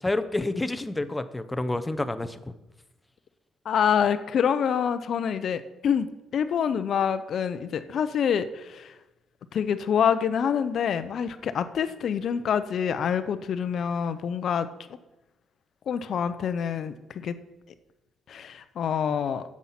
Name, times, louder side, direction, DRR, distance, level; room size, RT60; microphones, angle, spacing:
voice 1, 0.0-2.5, left 2 dB, 15° left, 12 dB, 0.7 m, -29 dB
voice 2, 3.6-6.1 6.3-8.9 9.5-14.7 15.9-17.3 18.3-19.4, left 7 dB, 65° left, 12 dB, 0.7 m, -26 dB
9.2 x 7.3 x 5.8 m, 1.0 s
cardioid pair, 90°, 0 cm